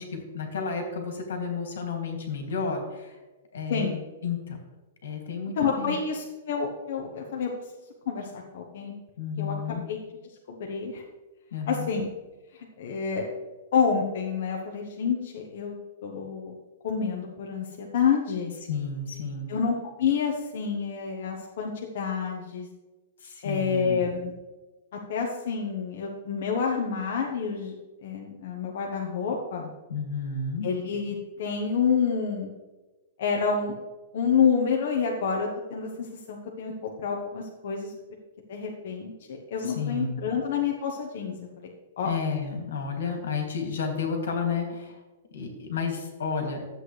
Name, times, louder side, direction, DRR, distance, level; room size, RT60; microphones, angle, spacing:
voice 1, 0.0-3.2 3.5-3.9 4.2-4.6 5.0-6.0 9.2-9.8 11.5-11.9 18.7-19.5 23.2-24.0 29.9-30.7 39.6-40.2 42.0-45.0 45.3-46.6, left 5 dB, 75° left, 3 dB, 2.3 m, -31 dB
voice 2, 5.6-7.5 8.1-8.9 9.4-10.0 10.6-11.0 11.7-12.1 12.5-13.3 13.7-15.8 16.0-16.6 16.8-18.5 19.5-22.7 23.4-24.3 25.1-27.7 28.0-29.7 30.6-32.5 33.2-33.8 34.1-35.9 36.3-37.9 38.5-41.7 42.0-42.1, left 6 dB, 50° left, 0 dB, 1.0 m, -28 dB
12.0 x 7.8 x 3.3 m, 1.2 s
hypercardioid pair, 175°, 0 cm